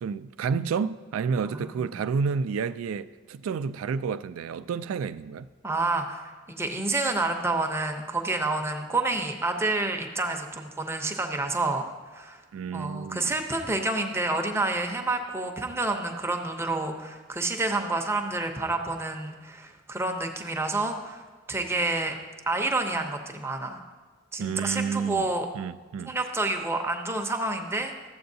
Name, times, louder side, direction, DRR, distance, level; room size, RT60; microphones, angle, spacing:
voice 1, 0.0-5.5 12.5-13.3 24.4-25.3 25.5-26.1, right 5 dB, 85° right, 0.3 m, -30 dB
voice 2, 1.5-1.9 5.6-11.9 12.1-12.4 12.7-22.1 22.5-23.8 24.3-25.5 26.1-28.1, right 2 dB, 15° right, 0.6 m, -29 dB
13.0 x 7.7 x 2.7 m
head